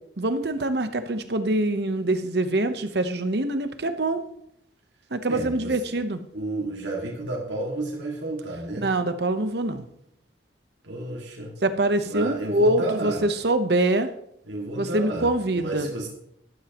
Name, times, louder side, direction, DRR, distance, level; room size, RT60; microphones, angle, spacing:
voice 1, 0.2-4.2 5.1-6.2 8.8-9.9 11.6-14.1 14.8-15.9, right 1 dB, 65° right, 9 dB, 1.0 m, -24 dB
voice 2, 5.3-5.7 6.3-8.9 10.8-11.5 12.0-13.2 14.5-16.1, right 2 dB, 85° right, -3 dB, 2.2 m, -31 dB
12.0 x 12.0 x 3.0 m, 0.74 s
head